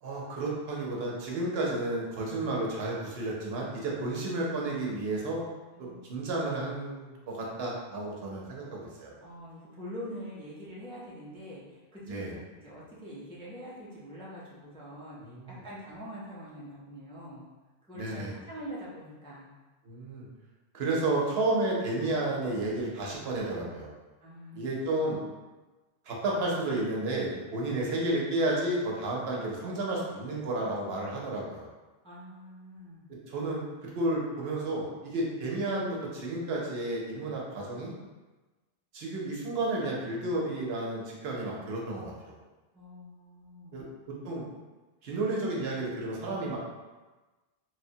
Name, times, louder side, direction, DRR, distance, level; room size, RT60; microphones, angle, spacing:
voice 1, 0.0-5.4 5.8-9.1 12.1-12.3 15.2-15.6 17.9-18.3 19.8-20.2 20.7-23.9 24.5-25.2 26.1-31.7 33.3-37.9 38.9-42.4 43.7-43.8 44.2-44.5 45.0-46.6, right 2 dB, 75° right, -3 dB, 0.9 m, -32 dB
voice 2, 5.8-6.1 9.2-17.5 17.9-19.5 24.2-24.9 32.0-33.1 42.7-43.8, equal, 10° left, -8 dB, 0.3 m, -44 dB
3.0 x 2.1 x 2.7 m, 1.2 s
omnidirectional pair, 1.1 m